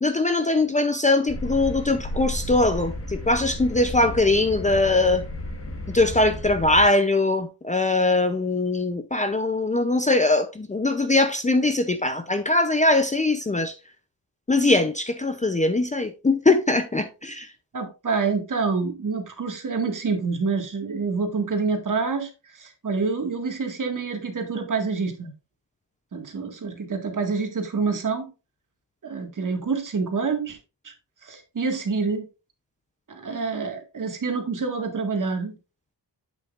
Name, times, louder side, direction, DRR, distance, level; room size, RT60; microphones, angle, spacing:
voice 1, 0.0-5.2 5.9-13.8 14.5-17.5, left 2 dB, 20° left, 0.6 m, -21 dB
sound 1, 1.3-6.9, left 1 dB, 35° left, 1.7 m, -33 dB
voice 2, 17.7-25.3 26.1-28.3 29.0-30.6 30.8-30.9 31.2-32.2 33.1-35.5, right 4 dB, 45° right, 1.9 m, -27 dB
8.5 x 6.9 x 2.5 m
wide cardioid pair, 130°, 41 cm